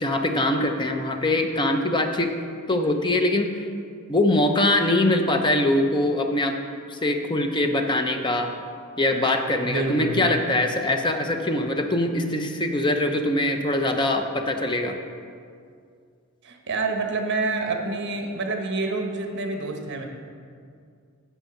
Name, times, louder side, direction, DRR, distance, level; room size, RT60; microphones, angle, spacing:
voice 1, 0.0-2.3 2.7-3.5 4.1-6.6 6.9-8.5 9.0-15.0, left 1 dB, 20° left, 5 dB, 0.6 m, -23 dB
voice 2, 9.6-10.4 16.4-20.0, right 3 dB, 55° right, 3 dB, 1.1 m, -27 dB
9.1 x 7.3 x 5.7 m, 2.2 s
head